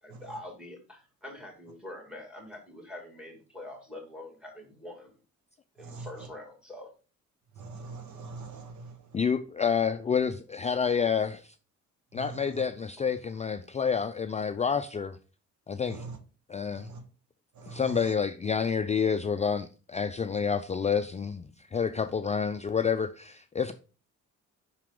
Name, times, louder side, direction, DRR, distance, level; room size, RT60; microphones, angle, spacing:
voice 1, 0.0-5.2 5.7-6.9 13.0-13.1, left 1 dB, 5° right, 2.5 m, -45 dB
voice 2, 5.8-6.3 7.5-9.3 12.1-12.6 15.9-16.2 16.7-17.0 17.5-18.1 20.3-20.4, right 4 dB, 70° right, 1.3 m, -43 dB
voice 3, 9.1-11.5 12.1-15.2 15.7-16.0 16.5-16.9 17.7-23.7, left 6 dB, 25° left, 0.4 m, -29 dB
5.9 x 4.6 x 3.7 m
cardioid pair, 90°, 30 cm